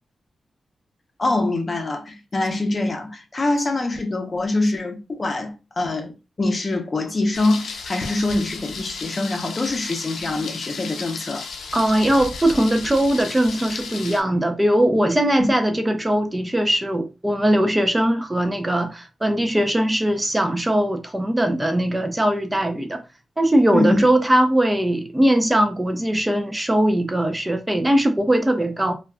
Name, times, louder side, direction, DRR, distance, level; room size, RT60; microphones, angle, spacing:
voice 1, 1.2-6.1 6.4-11.4 15.4-15.5 23.7-24.1, left 2 dB, 40° left, 0.6 m, -24 dB
Thunder, 7.3-14.2, left 4 dB, 90° left, 0.5 m, -34 dB
voice 2, 11.7-23.0 23.4-28.9, right 1 dB, 15° right, 0.4 m, -20 dB
2.3 x 2.2 x 3.4 m
cardioid pair, 90°, 0 cm